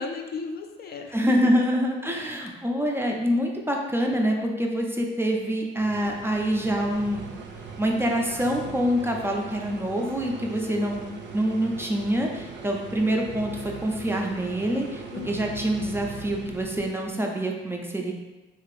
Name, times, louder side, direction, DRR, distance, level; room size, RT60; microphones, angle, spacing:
voice 1, 0.0-1.2 10.6-11.2 15.1-15.6, left 4 dB, 50° left, 4 dB, 0.4 m, -36 dB
voice 2, 1.1-7.2 7.8-11.0 11.3-18.1, equal, 10° right, 0 dB, 0.4 m, -26 dB
sound 1, 5.8-17.1, right 5 dB, 65° right, 0.5 m, -40 dB
2.8 x 2.5 x 3.1 m, 1.1 s
cardioid pair, 90°, 20 cm